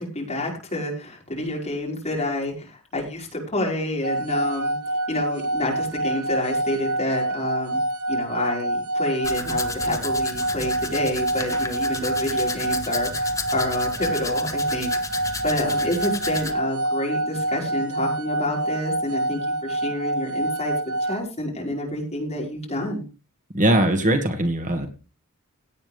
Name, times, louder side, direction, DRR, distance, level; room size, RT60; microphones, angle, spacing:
voice 1, 0.0-4.8 5.1-7.8 8.1-14.9 15.4-20.7 21.0-23.0, left 1 dB, 30° left, -1 dB, 5.4 m, -28 dB
sound 1, 4.0-21.2, right 1 dB, 85° right, 1.1 m, -27 dB
Domestic sounds home sounds, 9.2-16.5, left 3 dB, 15° left, 1.3 m, -33 dB
voice 2, 23.5-24.9, right 1 dB, 35° right, 5 dB, 2.1 m, -20 dB
17.5 x 8.9 x 3.5 m, 0.32 s
head